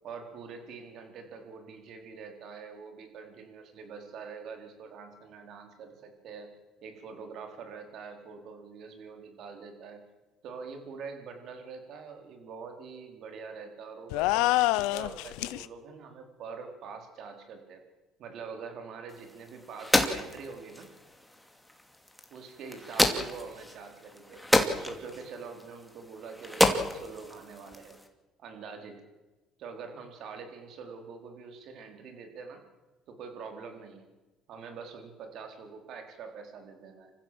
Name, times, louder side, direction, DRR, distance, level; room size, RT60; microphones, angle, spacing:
voice 1, 0.0-6.5 6.8-10.0 10.4-17.8 18.2-20.9 22.3-28.0 28.4-29.0 29.6-32.6 33.1-34.1 34.5-37.1, right 5 dB, 65° right, 5 dB, 4.2 m, -44 dB
sound 1, 14.1-15.6, left 18 dB, 85° left, 0.7 m, -26 dB
sound 2, 19.1-28.1, left 1 dB, 5° left, 2.8 m, -31 dB
27.5 x 15.0 x 7.7 m, 1.1 s
supercardioid pair, 90°, 0 cm